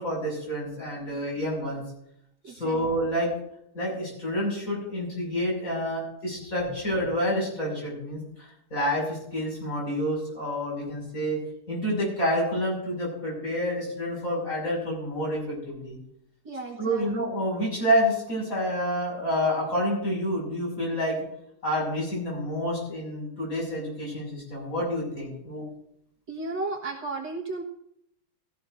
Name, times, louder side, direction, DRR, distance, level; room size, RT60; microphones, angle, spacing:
voice 1, 0.0-1.8 2.5-3.3 3.7-11.4 11.7-16.0 16.8-21.2 21.6-25.6, equal, 35° left, -3 dB, 6.6 m, -28 dB
voice 2, 2.4-2.8 16.5-17.0 26.3-27.6, right 3 dB, 55° right, -2 dB, 2.1 m, -34 dB
17.0 x 15.5 x 2.6 m, 0.74 s
omnidirectional pair, 2.4 m